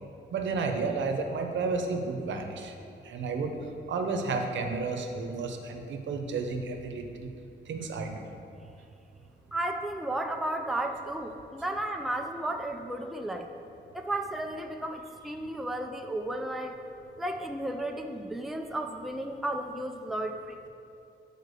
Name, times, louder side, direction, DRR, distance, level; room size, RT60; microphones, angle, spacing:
voice 1, 0.3-2.7 3.0-3.5 3.9-7.3 7.7-8.3, right 4 dB, 90° right, 4 dB, 0.8 m, -32 dB
voice 2, 9.5-13.5 13.9-16.8 17.2-20.7, right 1 dB, ahead, 4 dB, 0.4 m, -33 dB
6.6 x 4.6 x 6.7 m, 2.6 s
wide cardioid pair, 160°, 19 cm